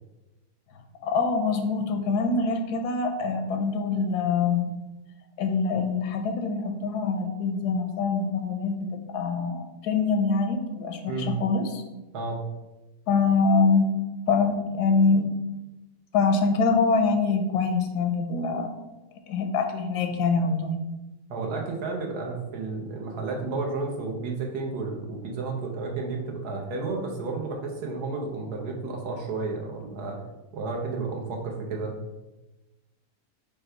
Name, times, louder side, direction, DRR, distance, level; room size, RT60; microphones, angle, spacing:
voice 1, 1.0-4.7 5.4-8.9 9.1-11.8 13.1-13.9 14.3-15.3 16.1-18.7 19.3-20.8, left 4 dB, 80° left, 6 dB, 1.1 m, -24 dB
voice 2, 21.3-30.2 30.5-32.0, right 3 dB, 75° right, 1 dB, 1.3 m, -32 dB
5.2 x 2.2 x 4.3 m, 1.1 s
omnidirectional pair, 1.7 m